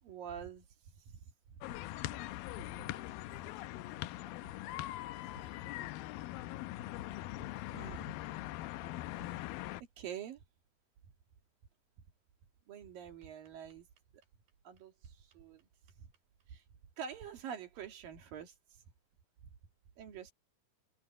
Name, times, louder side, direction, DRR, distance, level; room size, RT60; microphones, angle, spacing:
voice 1, 0.0-0.7 1.0-1.2 1.5-1.6 7.3-7.4 7.7-8.1 9.2-9.4 10.0-10.4 12.7-13.9 14.7-15.7 16.0-16.1 16.5-16.6 17.0-18.8 20.0-20.3, right 8 dB, 70° right, 3.9 m, -46 dB
sound 1, 1.6-9.8, left 16 dB, 85° left, 2.5 m, -42 dB
voice 2, 2.8-5.6, left 8 dB, 60° left, 3.7 m, -61 dB
omnidirectional pair, 4.1 m